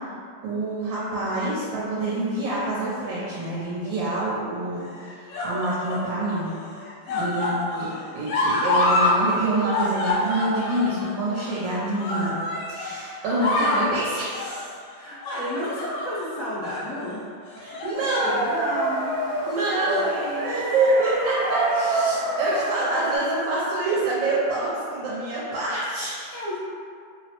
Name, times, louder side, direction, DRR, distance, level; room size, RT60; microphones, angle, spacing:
voice 1, 0.4-4.9 5.1-6.5 7.2-12.4 12.7-14.7 17.6-18.4 19.5-20.0 20.4-26.3, right 2 dB, 85° right, -7 dB, 1.3 m, -26 dB
sound 1, 3.3-3.9 4.8-6.1 6.4-9.2 9.5-12.9 13.2-13.9 14.3-14.6 15.2-16.3 16.6-16.8 17.5-18.0 18.3-18.5 19.6-20.3 21.2-21.3, left 2 dB, 80° left, 1.3 m, -27 dB
voice 2, 7.1-7.5 14.9-17.2 17.9-19.4 19.7-20.6 26.3-26.6, left 1 dB, 50° left, -10 dB, 1.1 m, -32 dB
sound 2, 17.9-23.2, right 2 dB, 70° right, 1.0 m, -28 dB
3.2 x 2.0 x 2.8 m, 2.3 s
omnidirectional pair, 2.0 m